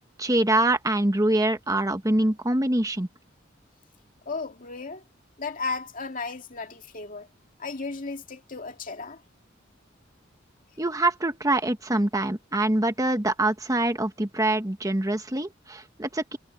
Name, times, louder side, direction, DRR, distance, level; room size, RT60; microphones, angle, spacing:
voice 1, 0.2-3.1 10.8-16.4, right 1 dB, 20° right, 1.3 m, -24 dB
voice 2, 4.3-5.0 5.4-7.3 7.6-9.2, left 4 dB, 45° left, 2.2 m, -34 dB
head